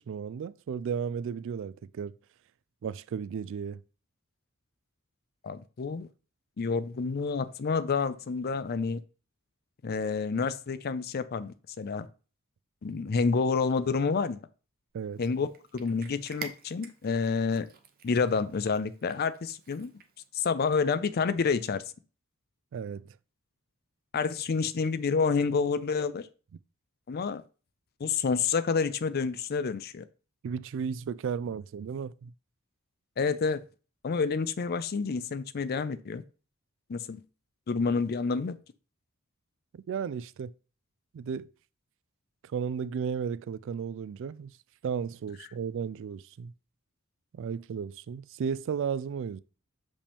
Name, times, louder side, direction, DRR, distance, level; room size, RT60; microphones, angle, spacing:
voice 1, 0.0-2.1 2.8-3.8 14.9-15.2 22.7-23.2 30.4-32.3 39.7-40.5 41.1-41.5 42.5-44.5 44.8-46.5 47.3-49.4, right 6 dB, 65° right, 0.3 m, -34 dB
voice 2, 5.4-6.1 6.6-9.0 9.8-12.1 12.8-14.4 15.2-15.5 15.7-17.7 18.0-19.9 20.3-21.8 24.1-26.3 27.1-27.4 28.0-30.0 33.2-33.6 34.0-36.2 36.9-37.2 37.7-38.5, left 5 dB, 45° left, 0.4 m, -28 dB
Cat, 15.1-20.3, right 5 dB, 45° right, 0.8 m, -48 dB
6.8 x 5.2 x 3.5 m
head